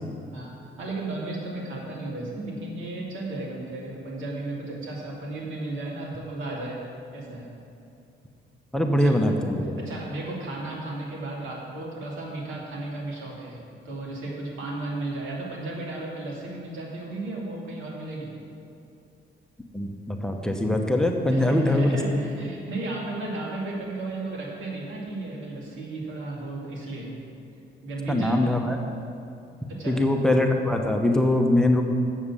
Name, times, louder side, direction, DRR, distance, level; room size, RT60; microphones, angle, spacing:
voice 1, 0.3-6.8 7.1-7.5 9.0-9.1 9.8-13.6 13.8-18.3 21.3-27.1 27.8-28.4 29.7-30.0, right 2 dB, 85° right, -4 dB, 2.6 m, -34 dB
voice 2, 8.7-9.7 19.7-22.2 28.1-28.8 29.9-31.8, left 1 dB, 5° left, 3 dB, 0.9 m, -22 dB
7.3 x 7.2 x 8.3 m, 2.7 s
cardioid pair, 90°, 20 cm